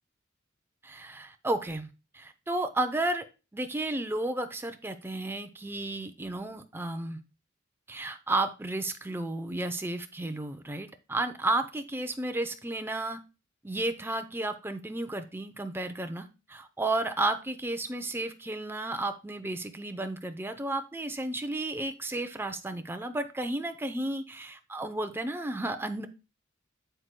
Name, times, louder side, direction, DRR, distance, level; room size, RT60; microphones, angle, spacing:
voice 1, 0.8-3.3 3.5-7.2 7.9-13.2 13.6-26.1, right 2 dB, 10° right, 7 dB, 0.7 m, -32 dB
7.9 x 7.7 x 2.2 m, 0.29 s
head